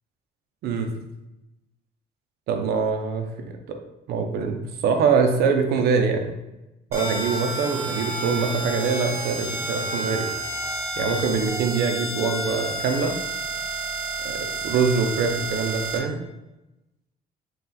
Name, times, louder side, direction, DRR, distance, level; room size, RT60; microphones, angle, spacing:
voice 1, 2.5-3.8 4.1-6.3 6.9-10.2 11.0-13.2 14.2-14.4 14.6-16.2, right 5 dB, 70° right, 5 dB, 0.6 m, -24 dB
sound 1, 6.9-16.0, right 2 dB, 15° right, 1.0 m, -30 dB
3.9 x 2.4 x 4.1 m, 0.97 s
cardioid pair, 110°, 17 cm